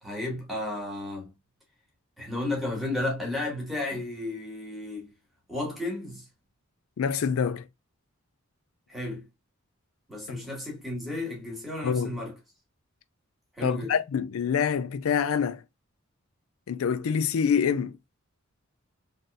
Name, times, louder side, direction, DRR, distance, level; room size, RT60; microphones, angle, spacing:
voice 1, 0.0-1.3 2.2-5.1 5.5-6.2 8.9-9.2 10.1-12.3 13.6-13.9, left 2 dB, ahead, 2.1 m, -33 dB
voice 2, 7.0-7.7 10.3-10.4 11.8-12.1 13.6-15.6 16.7-18.0, left 7 dB, 80° left, 0.4 m, -26 dB
4.1 x 3.4 x 2.5 m
head